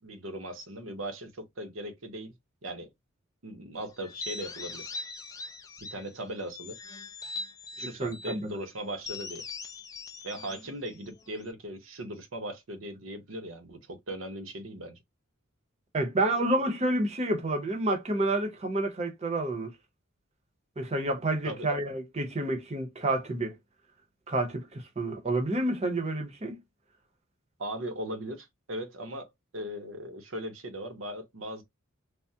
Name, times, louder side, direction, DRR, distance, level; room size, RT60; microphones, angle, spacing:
voice 1, 0.0-2.3 2.6-2.9 3.4-4.8 5.8-6.8 7.8-9.4 10.2-14.9 21.4-21.7 27.6-31.6, right 1 dB, 70° right, 0.8 m, -38 dB
sound 1, 4.0-6.1 6.5-8.4 9.0-11.5, left 3 dB, 15° left, 0.3 m, -41 dB
voice 2, 8.0-8.5 15.9-19.7 20.8-23.5 24.3-26.6, right 2 dB, 30° right, 0.7 m, -29 dB
3.4 x 2.1 x 2.7 m
head